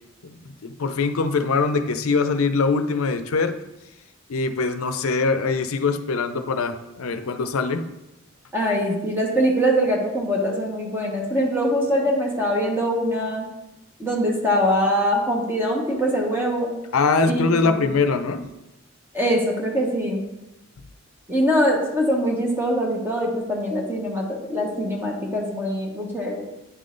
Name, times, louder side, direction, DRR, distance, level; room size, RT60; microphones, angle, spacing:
voice 1, 0.6-3.5 4.3-7.8 16.9-18.5, left 4 dB, 90° left, 9 dB, 0.5 m, -22 dB
voice 2, 8.5-13.5 14.0-16.7 17.2-17.9 19.1-20.2 21.3-26.5, equal, 10° right, -2 dB, 1.0 m, -23 dB
9.5 x 3.8 x 3.8 m, 0.95 s
head